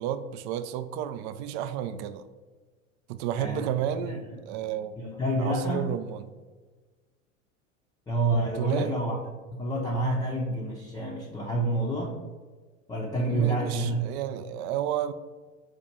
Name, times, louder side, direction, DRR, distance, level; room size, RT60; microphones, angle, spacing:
voice 1, 0.0-2.2 3.1-5.0 5.4-6.2 8.6-8.9 13.3-15.1, right 10 dB, 55° right, 12 dB, 0.4 m, -32 dB
voice 2, 5.0-5.9 8.1-9.2 9.6-12.2 12.9-14.0, right 1 dB, 10° left, -4 dB, 0.6 m, -28 dB
4.4 x 2.5 x 4.2 m, 1.3 s
hypercardioid pair, 85°, 38 cm